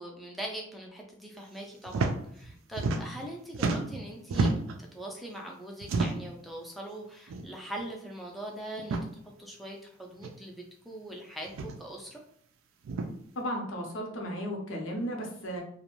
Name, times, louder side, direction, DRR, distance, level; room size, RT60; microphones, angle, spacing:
voice 1, 0.0-4.5 4.8-9.1 9.4-12.2, right 1 dB, ahead, -1 dB, 0.3 m, -42 dB
sound 1, 1.9-2.1 2.4-3.3 3.5-4.8 5.8-6.4 7.3-7.5 7.8-7.9 8.8-9.1 10.2-10.3 11.5-11.8 12.8-13.1, right 3 dB, 85° right, 0.3 m, -30 dB
voice 2, 13.3-15.6, equal, 85° left, 1 dB, 0.7 m, -34 dB
2.4 x 2.1 x 3.0 m, 0.68 s
head